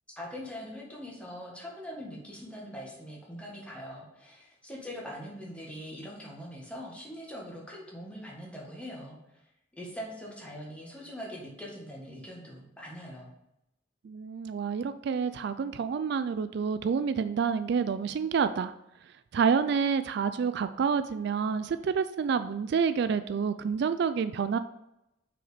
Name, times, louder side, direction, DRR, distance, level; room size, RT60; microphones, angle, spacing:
voice 1, 0.2-9.4 9.7-13.3, equal, 5° left, -3 dB, 1.7 m, -42 dB
voice 2, 14.0-18.7 19.3-24.6, right 6 dB, 60° right, 11 dB, 0.3 m, -28 dB
6.1 x 5.0 x 5.0 m, 0.86 s
head